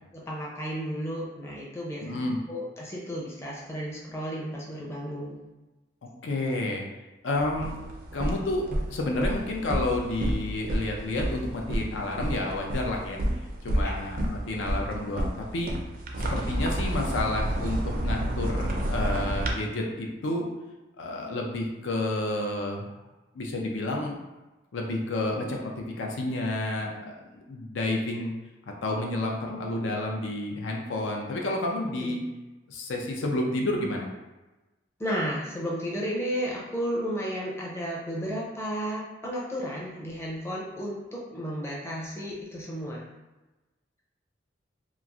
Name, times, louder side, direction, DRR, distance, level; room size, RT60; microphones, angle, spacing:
voice 1, 0.1-5.4 13.8-13.9 31.9-32.2 35.0-43.0, equal, 15° left, -4 dB, 0.5 m, -33 dB
voice 2, 2.0-2.4 6.0-6.8 7.2-7.8 8.1-13.2 13.6-15.7 16.2-20.4 21.0-22.9 23.3-24.2 24.7-27.1 27.5-28.3 28.8-32.2 32.7-34.1, left 2 dB, 85° left, 1 dB, 0.5 m, -30 dB
sound 1, 7.3-19.5, right 1 dB, 50° right, 0.4 m, -30 dB
2.9 x 2.4 x 2.4 m, 1.1 s
head